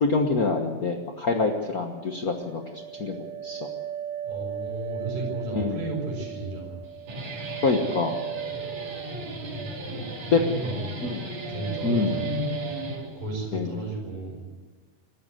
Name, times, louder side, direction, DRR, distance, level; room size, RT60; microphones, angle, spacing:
voice 1, 0.0-3.1 3.4-3.7 5.6-5.8 7.6-8.2 10.3-10.4 11.1-11.2 11.8-12.2 13.5-13.7, left 4 dB, 60° left, 3 dB, 0.9 m, -25 dB
sound 1, 2.0-10.1 10.4-11.0 11.3-13.0, right 9 dB, 45° right, 4.3 m, -37 dB
voice 2, 4.2-6.8 9.1-10.0 10.4-10.8 11.5-12.4 13.2-14.5, right 2 dB, 90° right, 2 dB, 8.0 m, -34 dB
Guitar, 6.8-13.5, equal, 65° right, 4.8 m, -36 dB
25.5 x 13.0 x 8.2 m, 1.3 s
omnidirectional pair, 3.7 m